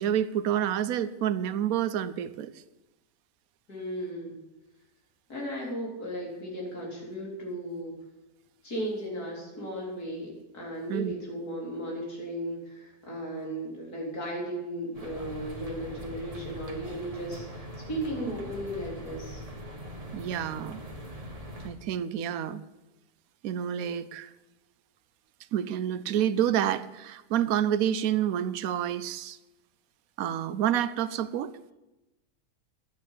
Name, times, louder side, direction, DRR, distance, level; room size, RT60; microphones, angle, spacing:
voice 1, 0.0-2.5 10.9-11.1 20.1-20.8 21.6-22.6 23.4-24.3 25.5-29.4 30.2-31.5, right 10 dB, 70° right, 14 dB, 1.1 m, -28 dB
voice 2, 3.7-4.4 5.3-7.9 8.6-19.4, right 1 dB, 85° left, -3 dB, 4.5 m, -36 dB
sound 1, 14.9-21.7, equal, 25° right, 1.8 m, -41 dB
11.5 x 9.4 x 8.4 m, 1.0 s
omnidirectional pair, 1.6 m